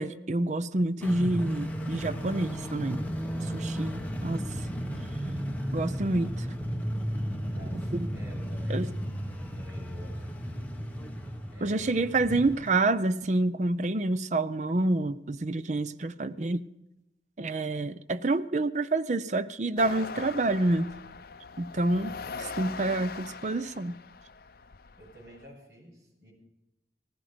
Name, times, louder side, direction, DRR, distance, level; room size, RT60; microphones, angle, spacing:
voice 1, 0.0-3.1 3.4-4.7 5.7-6.5 8.7-8.9 11.6-16.7 17.4-20.9 21.6-24.0, right 2 dB, 40° right, 0.6 m, -28 dB
sound 1, 1.0-12.7, equal, 10° left, 1.4 m, -34 dB
voice 2, 7.5-9.0 9.5-10.2 11.5-12.1 25.0-26.3, equal, 70° right, 7.4 m, -50 dB
sound 2, 19.8-25.5, left 4 dB, 55° left, 0.6 m, -41 dB
18.5 x 15.0 x 5.1 m
head